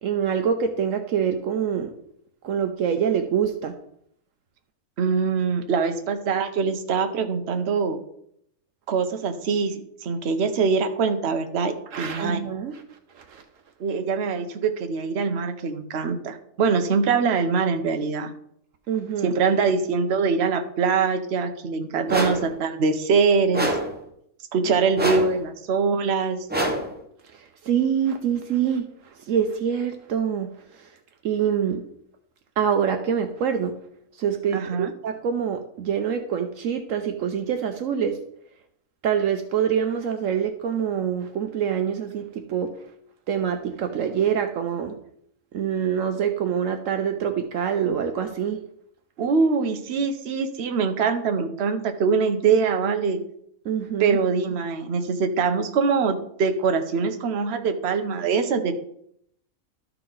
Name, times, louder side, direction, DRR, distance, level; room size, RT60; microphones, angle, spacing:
voice 1, 0.0-1.9 2.4-3.7 11.9-12.8 13.1-13.4 18.9-19.4 27.3-30.9 31.2-31.8 32.6-33.7 34.2-38.2 39.0-42.7 43.3-45.0 45.5-48.6 53.6-54.2, right 8 dB, 70° right, 6 dB, 1.0 m, -25 dB
voice 2, 5.0-8.0 8.9-12.4 13.8-18.3 19.2-23.7 24.5-26.4 34.5-34.9 49.2-53.2 54.0-58.7, right 5 dB, 55° right, 6 dB, 1.0 m, -23 dB
sound 1, 22.1-22.5 23.5-24.0 25.0-25.4 26.5-27.0, right 1 dB, 10° right, 0.8 m, -25 dB
13.0 x 4.6 x 3.8 m, 0.70 s
omnidirectional pair, 1.5 m